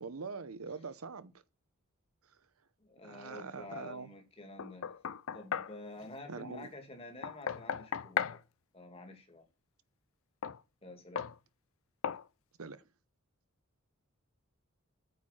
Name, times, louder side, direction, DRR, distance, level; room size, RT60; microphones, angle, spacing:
voice 1, 0.0-1.3 3.0-4.1 6.3-6.7 12.6-12.8, right 4 dB, 85° right, 0.8 m, -43 dB
voice 2, 2.8-4.9 5.3-8.4 8.7-9.5 10.8-11.3, left 2 dB, 25° left, 2.1 m, -49 dB
Knock, 4.6-5.8 7.2-8.4 10.4-10.6 11.2-11.4 12.0-12.3, left 7 dB, 70° left, 0.5 m, -36 dB
9.0 x 4.8 x 5.7 m
head